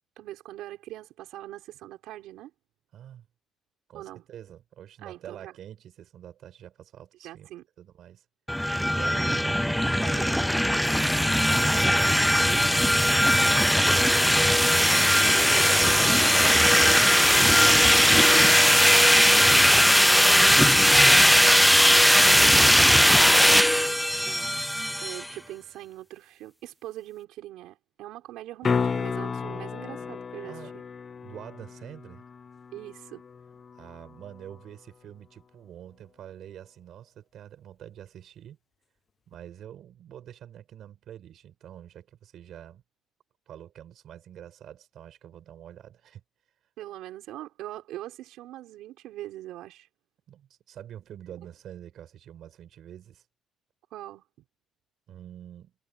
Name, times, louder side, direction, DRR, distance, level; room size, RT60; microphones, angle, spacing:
voice 1, 0.2-2.5 3.9-4.2 5.0-5.5 7.2-7.7 24.2-24.5 25.0-30.8 32.7-33.2 46.8-49.9 53.9-54.2, right 14 dB, 85° right, 5.6 m, -42 dB
voice 2, 2.9-3.3 3.9-7.5 7.8-8.2 8.9-11.2 11.8-12.7 13.1-15.1 15.5-22.2 29.4-30.8 31.2-32.2 33.7-38.6 39.3-42.8 43.5-46.2 50.3-53.2 55.1-55.7, right 10 dB, 55° right, 6.1 m, -46 dB
sound 1, 8.5-25.3, equal, ahead, 0.3 m, -19 dB
sound 2, 28.6-34.7 39.3-39.4, left 6 dB, 30° left, 0.7 m, -33 dB
cardioid pair, 150°, 0 cm